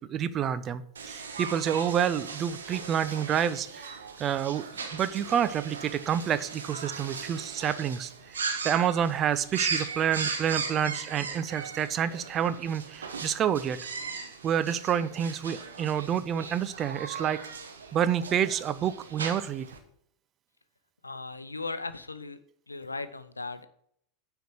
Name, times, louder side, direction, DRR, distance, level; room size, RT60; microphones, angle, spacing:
voice 1, 0.1-3.9 4.2-4.7 4.9-13.8 14.4-17.4 17.9-19.7, right 9 dB, 35° right, 13 dB, 0.7 m, -28 dB
sound 1, 1.0-19.8, right 5 dB, 75° right, 1.3 m, -38 dB
voice 2, 21.0-22.4 22.7-23.7, left 3 dB, 85° left, 13 dB, 0.6 m, -37 dB
9.3 x 4.6 x 7.7 m, 0.67 s
figure-of-eight pair, 85°, 0 cm